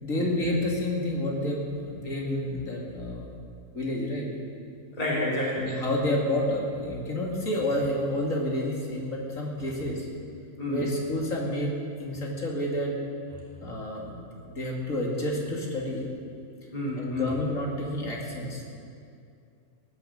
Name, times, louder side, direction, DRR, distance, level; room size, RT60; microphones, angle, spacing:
voice 1, 0.0-3.3 3.7-4.3 5.6-10.1 10.7-11.7 12.0-12.9 13.6-14.2 14.4-16.0 17.0-18.6, left 1 dB, 55° left, -2 dB, 2.9 m, -29 dB
voice 2, 5.0-5.6 10.6-10.8 16.7-17.4, left 1 dB, 25° left, -5 dB, 3.1 m, -29 dB
19.0 x 9.6 x 7.8 m, 2.5 s
omnidirectional pair, 1.7 m